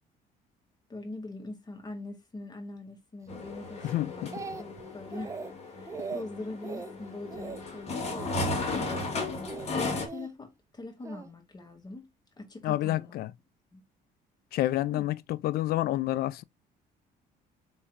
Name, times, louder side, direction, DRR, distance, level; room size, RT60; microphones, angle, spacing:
voice 1, 0.9-5.4 5.7-9.1 9.7-12.1 12.4-13.2 13.7-13.8 14.9-15.1, left 2 dB, 25° left, 1.8 m, -43 dB
sound 1, 3.3-10.1, left 3 dB, 40° left, 1.7 m, -35 dB
voice 2, 3.8-4.3 6.0-6.1 12.6-13.3 14.5-16.4, left 15 dB, 65° left, 0.4 m, -29 dB
Speech, 3.8-4.8 5.1-5.5 5.9-6.2 6.6-6.9 7.3-7.6 8.0-8.3 8.7-9.1 9.5-10.3 11.0-11.3, right 4 dB, 20° right, 0.5 m, -40 dB
3.6 x 3.1 x 4.5 m
cardioid pair, 110°, 17 cm